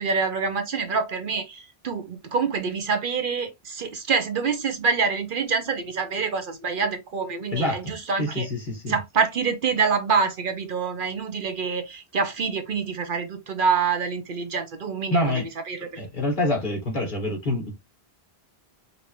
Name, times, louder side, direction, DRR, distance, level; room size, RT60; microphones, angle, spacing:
voice 1, 0.0-8.5 8.9-16.0, right 5 dB, 60° right, 0.8 m, -26 dB
voice 2, 7.5-7.9 8.2-9.0 15.1-15.5 16.0-17.7, left 1 dB, 50° left, 1.8 m, -26 dB
5.1 x 2.7 x 3.0 m
omnidirectional pair, 1.0 m